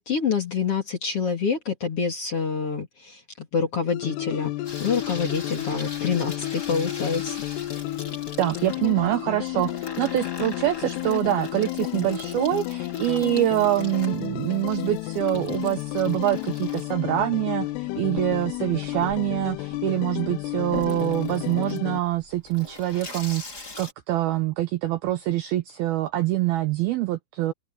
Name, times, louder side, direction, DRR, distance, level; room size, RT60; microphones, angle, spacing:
voice 1, 0.0-4.5 4.8-7.4, left 6 dB, 35° left, 2.7 m, -27 dB
sound 1, 3.9-22.0, left 17 dB, 80° left, 2.4 m, -32 dB
Water tap faucet / Sink (filling or washing), 4.6-23.9, left 3 dB, 20° left, 3.9 m, -42 dB
voice 2, 8.4-27.5, right 14 dB, 90° right, 2.1 m, -25 dB
omnidirectional pair, 5.6 m